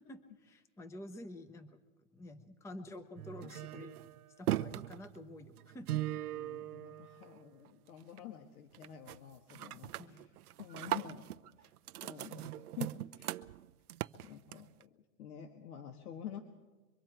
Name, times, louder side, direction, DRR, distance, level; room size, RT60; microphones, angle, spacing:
voice 1, 0.0-1.8 2.1-4.0 4.4-6.0 10.0-10.3, left 1 dB, 5° left, 9 dB, 0.8 m, -49 dB
sound 1, 3.2-7.7 8.0-8.4 8.7-9.2 9.5-14.8, right 14 dB, 85° right, 0.7 m, -40 dB
voice 2, 6.3-10.3 10.6-11.3 11.6-11.7 12.0-13.4 14.2-16.4, left 9 dB, 70° left, 5 dB, 1.8 m, -49 dB
24.0 x 24.0 x 4.6 m, 1.2 s
hypercardioid pair, 130°, 44 cm